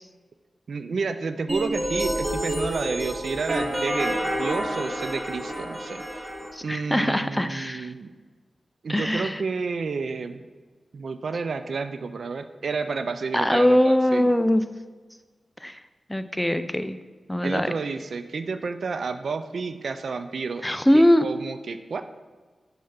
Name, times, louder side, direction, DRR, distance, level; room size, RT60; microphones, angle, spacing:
voice 1, 0.7-6.3 6.6-8.1 8.8-10.5 10.9-14.3 17.4-20.7 20.9-22.0, right 4 dB, 75° right, 10 dB, 0.4 m, -30 dB
sound 1, 1.5-6.5, equal, 20° right, 2.0 m, -28 dB
voice 2, 6.5-7.9 8.9-9.4 13.3-14.6 15.6-15.8 16.1-17.0 17.3-17.7 20.6-21.3, equal, 10° left, 11 dB, 0.4 m, -21 dB
6.4 x 3.4 x 5.6 m, 1.4 s
cardioid pair, 45°, 0 cm